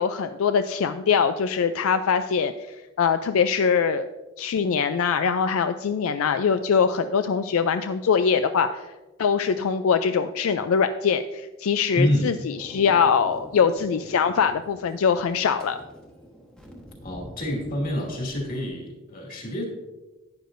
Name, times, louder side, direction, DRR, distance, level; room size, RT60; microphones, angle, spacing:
voice 1, 0.0-4.1 4.4-8.9 9.2-15.8, left 6 dB, 75° left, 9 dB, 0.4 m, -23 dB
voice 2, 12.0-12.3 17.0-19.7, left 1 dB, 40° left, -1 dB, 2.4 m, -27 dB
Thunder, 12.6-18.7, equal, 5° left, 1.1 m, -46 dB
11.5 x 9.4 x 2.6 m, 1.2 s
head